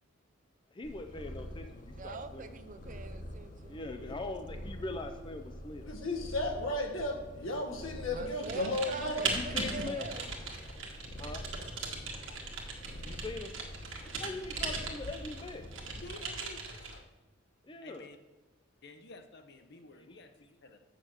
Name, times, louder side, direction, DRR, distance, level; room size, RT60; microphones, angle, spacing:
voice 1, 0.7-2.6 3.7-5.9 9.2-10.1 10.7-10.8 11.2-11.4 12.2-12.4 13.0-13.5 14.1-15.6 17.6-18.1 19.9-20.2, left 2 dB, 25° left, 6 dB, 0.5 m, -42 dB
Purr, 0.8-16.2, equal, 40° left, 1.3 m, -46 dB
voice 2, 1.9-3.8 8.1-10.3, right 4 dB, 40° right, 10 dB, 0.6 m, -43 dB
voice 3, 5.8-9.2 9.6-9.9, left 2 dB, 80° left, 2 dB, 1.5 m, -34 dB
Typing, 8.4-17.0, right 4 dB, 75° right, 1.6 m, -39 dB
voice 4, 16.0-17.0 17.8-18.2 18.8-20.8, left 2 dB, 55° left, 6 dB, 0.9 m, -51 dB
7.8 x 6.4 x 6.4 m, 1.1 s
head